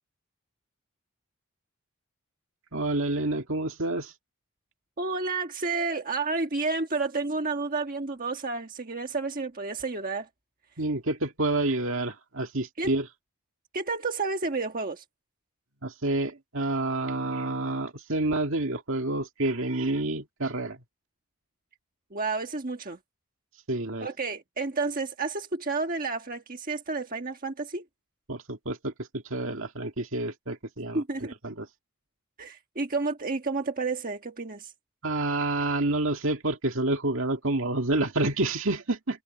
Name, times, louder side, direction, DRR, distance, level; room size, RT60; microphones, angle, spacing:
voice 1, 2.7-4.1 10.8-13.1 15.8-20.8 23.7-24.1 28.3-31.7 35.0-39.2, right 2 dB, 60° right, 2.2 m, -28 dB
voice 2, 5.0-10.3 12.8-12.9 13.7-15.0 22.1-23.0 24.0-27.8 30.9-31.3 32.4-34.7, right 3 dB, 40° right, 1.4 m, -30 dB
head